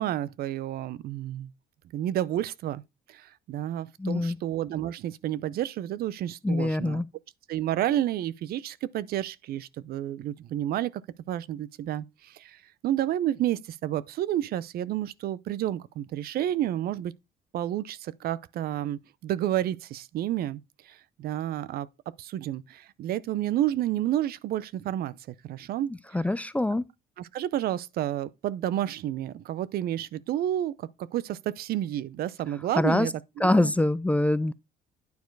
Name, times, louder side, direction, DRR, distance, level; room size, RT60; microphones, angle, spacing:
voice 1, 0.0-1.5 1.9-2.8 3.1-7.0 7.5-11.0 11.3-12.6 12.8-17.1 17.5-20.6 20.9-21.9 22.2-25.2 25.4-25.9 27.2-33.1 33.4-33.7, right 12 dB, 65° right, 0.6 m, -30 dB
voice 2, 4.0-4.4 6.4-7.1 26.1-26.9 32.8-33.1 33.4-34.5, left 1 dB, 10° left, 0.4 m, -24 dB
9.5 x 4.4 x 4.6 m
cardioid pair, 110°, 17 cm